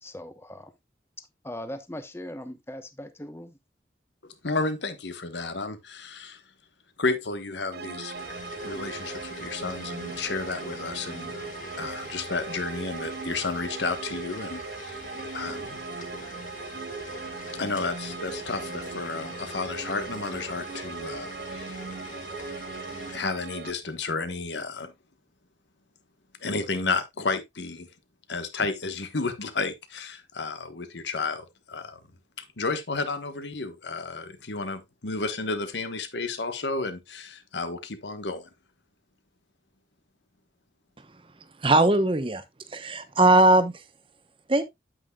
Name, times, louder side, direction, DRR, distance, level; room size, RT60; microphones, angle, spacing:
voice 1, 0.0-0.7 1.4-3.6, left 1 dB, 15° left, 0.9 m, -39 dB
voice 2, 4.2-6.4 7.0-8.1 8.6-11.4 11.8-15.0 15.3-15.8 17.6-21.8 23.1-24.9 26.4-27.9 28.3-32.0 32.4-38.5, left 3 dB, 85° left, 1.2 m, -32 dB
sound 1, 7.7-23.7, right 4 dB, 60° right, 0.5 m, -39 dB
sound 2, 8.1-23.2, left 2 dB, 45° left, 1.7 m, -43 dB
voice 3, 41.6-42.4 42.7-43.7 44.5-44.6, right 2 dB, 30° right, 0.9 m, -19 dB
9.0 x 8.3 x 2.3 m
head